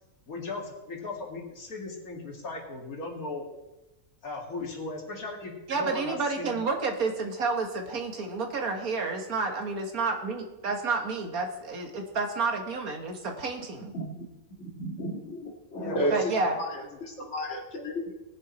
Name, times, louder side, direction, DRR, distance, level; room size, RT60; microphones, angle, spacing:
voice 1, 0.3-3.5 4.2-6.5 15.8-16.2 16.9-17.0, left 3 dB, 65° left, 0 dB, 2.4 m, -37 dB
voice 2, 5.7-13.9 16.1-16.6, right 4 dB, 65° right, 3 dB, 1.8 m, -30 dB
voice 3, 14.6-16.1 16.6-18.1, equal, 45° left, 0 dB, 2.2 m, -33 dB
19.5 x 6.8 x 4.2 m, 1.0 s
omnidirectional pair, 1.6 m